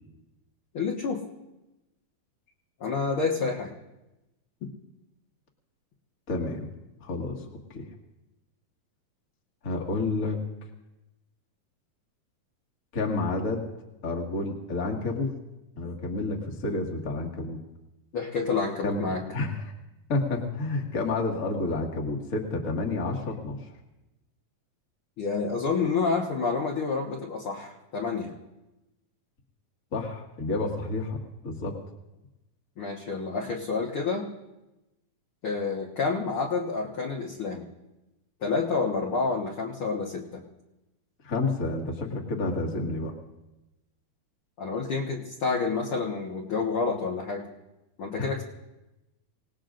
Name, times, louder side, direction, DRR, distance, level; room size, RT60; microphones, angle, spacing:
voice 1, 0.7-1.2 2.8-3.7 18.1-19.2 25.2-28.3 32.8-34.3 35.4-37.7 38.4-40.4 44.6-47.5 48.0-48.4, left 4 dB, 55° left, -2 dB, 1.6 m, -29 dB
voice 2, 6.3-6.7 7.0-7.5 7.7-7.9 9.6-10.4 12.9-13.7 14.0-15.3 15.8-17.6 18.8-19.7 20.1-23.7 29.9-31.8 41.2-43.1 48.2-48.4, left 3 dB, 30° left, 0 dB, 1.7 m, -30 dB
26.5 x 18.5 x 2.6 m, 0.99 s
omnidirectional pair, 4.0 m